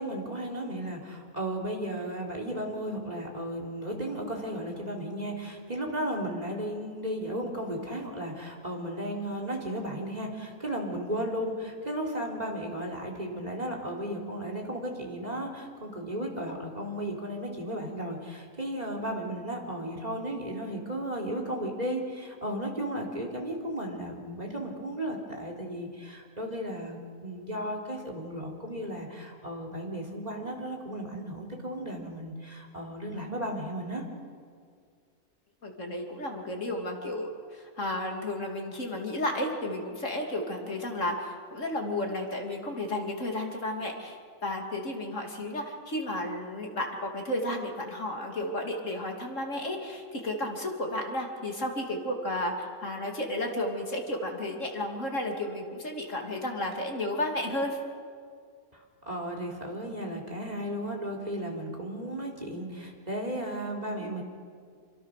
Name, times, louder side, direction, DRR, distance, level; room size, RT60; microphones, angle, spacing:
voice 1, 0.0-34.0 58.7-64.2, right 1 dB, 30° right, 1 dB, 3.9 m, -35 dB
voice 2, 35.6-57.8 64.0-64.2, left 1 dB, 65° left, 2 dB, 3.1 m, -33 dB
27.5 x 25.5 x 6.6 m, 2.2 s
omnidirectional pair, 1.4 m